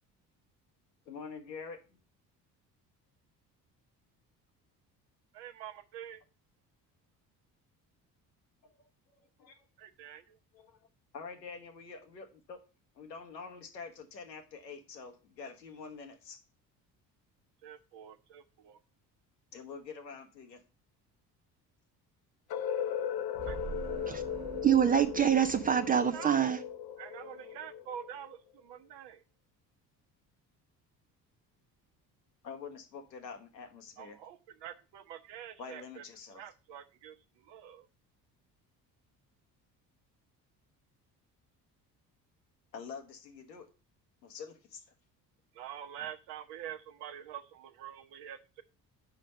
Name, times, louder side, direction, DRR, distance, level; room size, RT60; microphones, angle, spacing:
voice 1, 1.1-1.8 8.6-8.9 9.4-9.7 10.5-10.9 11.1-12.6 12.9-16.4 19.5-20.6 32.4-34.2 35.6-36.4 42.7-43.7 44.2-44.8, left 5 dB, 85° left, 1.1 m, -46 dB
voice 2, 5.3-6.2 9.8-10.4 17.6-18.8 23.5-23.6 25.8-26.6 27.0-29.2 34.0-36.0 36.3-37.2 37.5-37.9 45.5-48.6, right 10 dB, 60° right, 0.9 m, -46 dB
sound 1, 22.5-28.4, left 9 dB, 50° left, 0.7 m, -38 dB
sound 2, 23.4-26.8, right 5 dB, 35° right, 1.1 m, -44 dB
voice 3, 24.6-26.6, right 9 dB, 20° right, 0.3 m, -25 dB
5.2 x 5.0 x 6.3 m
figure-of-eight pair, 50°, 49 cm